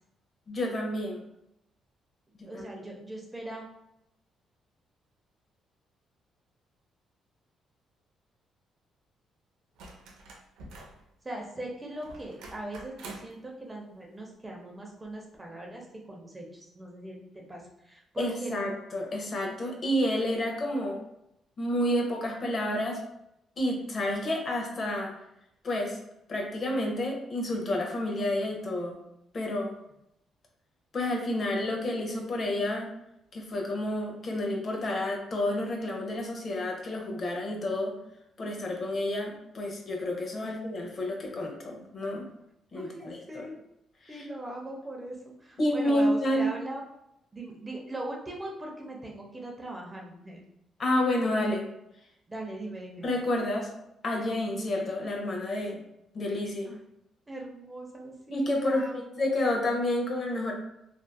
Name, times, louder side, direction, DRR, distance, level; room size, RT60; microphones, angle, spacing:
voice 1, 0.5-1.2 2.5-2.7 18.2-21.0 21.6-23.0 23.6-25.1 25.6-26.0 26.3-29.0 29.3-29.7 30.9-32.9 33.3-37.9 38.4-42.2 42.7-43.5 44.0-44.2 45.6-46.5 50.8-51.7 53.0-53.7 54.0-55.8 56.1-56.7 58.3-60.5, left 1 dB, 45° left, 0 dB, 0.6 m, -29 dB
voice 2, 2.5-3.7 11.2-18.6 40.4-40.6 42.7-43.6 44.1-46.8 47.3-50.4 52.3-53.1 56.7-56.8 57.3-59.1, right 1 dB, 20° right, -1 dB, 0.6 m, -40 dB
sound 1, 9.8-11.0 12.0-13.4 15.0-15.1, right 2 dB, 90° right, 0.4 m, -46 dB
2.6 x 2.3 x 2.2 m, 0.83 s
cardioid pair, 90°, 0 cm